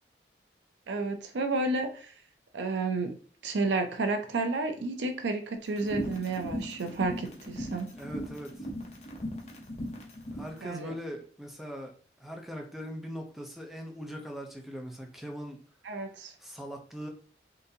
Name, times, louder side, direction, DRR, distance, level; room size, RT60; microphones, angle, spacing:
voice 1, 0.9-2.1 2.5-3.1 3.4-7.9 10.6-10.9 15.8-16.3, right 3 dB, 85° right, 6 dB, 0.5 m, -31 dB
sound 1, 5.7-10.6, equal, 40° left, 0.7 m, -38 dB
voice 2, 7.9-8.7 10.3-11.9 12.2-15.6 16.4-17.1, equal, ahead, 2 dB, 0.5 m, -40 dB
3.7 x 2.6 x 2.7 m, 0.44 s
head